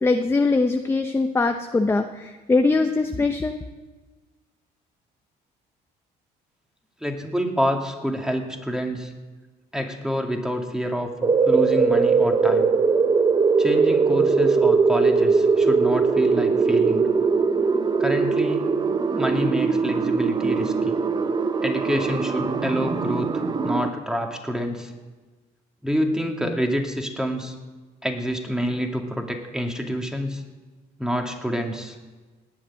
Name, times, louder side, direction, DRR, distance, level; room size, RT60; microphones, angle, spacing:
voice 1, 0.0-3.5, left 3 dB, 15° left, 6 dB, 0.8 m, -22 dB
voice 2, 7.0-9.1 9.7-12.7 13.6-17.1 18.0-18.7 19.1-21.0 21.6-24.9 25.8-27.6 28.0-30.4 31.0-32.0, equal, 5° right, 2 dB, 2.3 m, -27 dB
sound 1, 11.2-23.9, right 4 dB, 25° right, 0.8 m, -21 dB
18.5 x 6.6 x 9.7 m, 1.3 s
cardioid pair, 110°, 17 cm